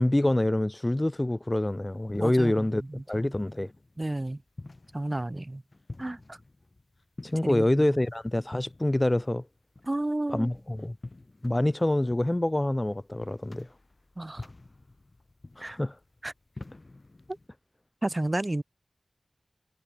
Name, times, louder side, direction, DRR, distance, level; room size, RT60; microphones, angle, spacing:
voice 1, 0.0-2.8 3.1-3.7 7.2-9.4 10.3-11.0 11.4-13.7 15.6-16.0, left 1 dB, 20° left, 0.5 m, -26 dB
sound 1, 1.6-17.5, left 2 dB, 40° left, 1.5 m, -49 dB
voice 2, 2.1-3.3 4.0-4.4 4.9-5.6 6.0-6.4 7.5-8.0 9.9-10.5 14.2-14.5 15.6-15.8 16.2-16.3 18.0-18.6, right 1 dB, 30° right, 0.8 m, -32 dB
wide cardioid pair, 80°, 0 cm